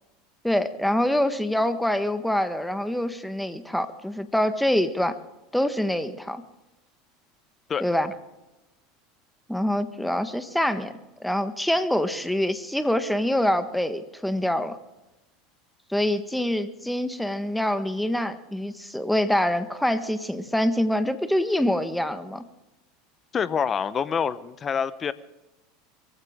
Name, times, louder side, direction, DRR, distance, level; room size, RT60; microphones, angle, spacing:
voice 1, 0.4-5.1 5.5-6.4 7.8-8.1 9.5-10.9 11.2-14.8 15.9-22.4, left 1 dB, 5° left, 10 dB, 1.5 m, -25 dB
voice 2, 23.3-25.1, left 7 dB, 30° left, 16 dB, 1.0 m, -26 dB
23.5 x 15.0 x 3.7 m, 1.0 s
hypercardioid pair, 85°, 0 cm